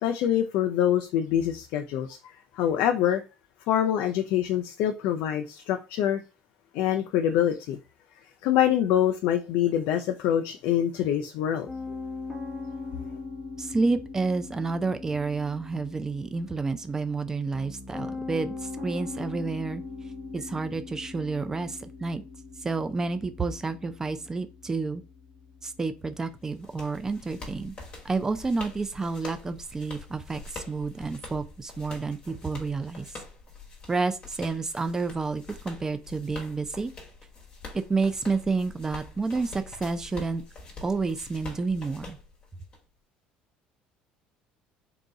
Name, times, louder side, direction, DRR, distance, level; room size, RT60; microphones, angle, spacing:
voice 1, 0.0-3.2 3.7-6.2 6.7-7.8 8.4-11.7, left 10 dB, 75° left, 0.5 m, -25 dB
Piano, 11.7-28.8, left 3 dB, 10° left, 1.1 m, -41 dB
voice 2, 13.6-19.8 20.3-22.2 22.6-25.0 25.6-27.7 28.0-33.1 33.9-36.9 37.7-40.4 40.8-42.2, right 4 dB, 15° right, 0.4 m, -30 dB
sound 1, 26.2-42.8, left 3 dB, 35° left, 1.2 m, -45 dB
3.9 x 2.3 x 3.7 m
cardioid pair, 135°, 3 cm